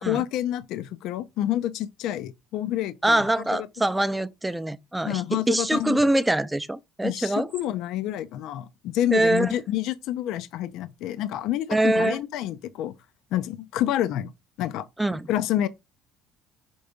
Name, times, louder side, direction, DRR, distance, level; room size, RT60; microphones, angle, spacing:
voice 1, 0.0-3.2 3.5-3.7 5.0-6.0 7.0-12.9 13.3-14.3 14.6-14.9 15.3-15.7, left 12 dB, 70° left, 0.5 m, -28 dB
voice 2, 3.0-7.5 9.1-9.6 11.7-12.2 15.0-15.3, right 1 dB, 10° right, 0.5 m, -24 dB
5.4 x 3.4 x 5.1 m
supercardioid pair, 100°, 0 cm